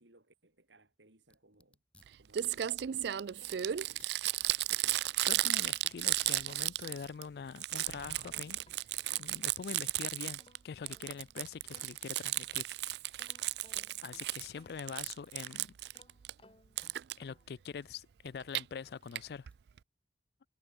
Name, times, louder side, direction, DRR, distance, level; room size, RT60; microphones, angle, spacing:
voice 1, 0.0-1.8 2.2-4.1, right 2 dB, 85° right, 3.9 m, -65 dB
sound 1, 1.2-19.9, left 2 dB, 5° left, 2.1 m, -69 dB
Crumpling crinkling, 2.0-2.1 2.3-7.2 7.5-10.6 10.9-14.5 14.8-16.3 16.8-17.1 18.3-18.6 19.1-19.2 19.5-19.6 19.8-19.9, right 14 dB, 65° right, 0.4 m, -34 dB
sound 2, 2.9-4.2 4.7-7.1 7.8-9.8 10.2-12.7 13.2-15.4 15.9-17.6, left 2 dB, 30° left, 5.2 m, -64 dB
voice 2, 5.3-8.6 8.8-12.7 13.3-13.4 14.0-15.8 17.2-19.5, left 6 dB, 60° left, 0.4 m, -44 dB
head